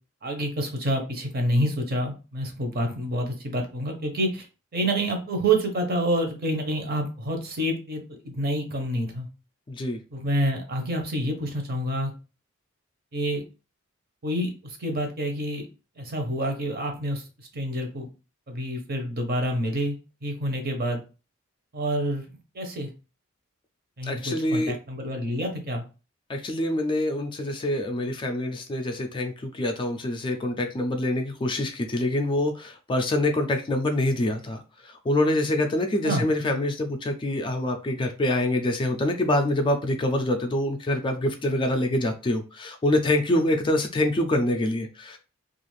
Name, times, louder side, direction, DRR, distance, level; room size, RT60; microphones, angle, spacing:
voice 1, 0.2-4.5 4.7-9.3 10.1-12.1 13.1-13.4 14.2-15.7 16.0-18.1 18.5-20.0 20.2-21.0 21.7-22.9 24.0-25.8 36.0-36.2, right 1 dB, 50° right, 4 dB, 0.7 m, -28 dB
voice 2, 9.7-10.0 24.0-24.8 26.3-45.2, left 1 dB, 25° left, 5 dB, 0.3 m, -25 dB
2.4 x 2.4 x 3.1 m, 0.32 s
head